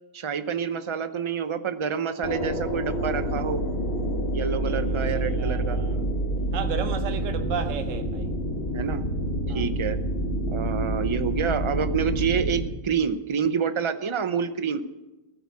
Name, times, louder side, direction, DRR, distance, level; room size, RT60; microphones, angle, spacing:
voice 1, 0.1-3.6 4.3-5.8 8.7-9.0 9.5-10.0 10.5-14.8, right 6 dB, 30° right, 0.6 m, -27 dB
sound 1, 2.2-12.7, right 1 dB, 80° left, 2.8 m, -28 dB
voice 2, 4.2-6.0 6.5-8.3 9.5-9.6, right 7 dB, 75° right, 1.2 m, -34 dB
15.5 x 8.9 x 8.3 m
omnidirectional pair, 1.4 m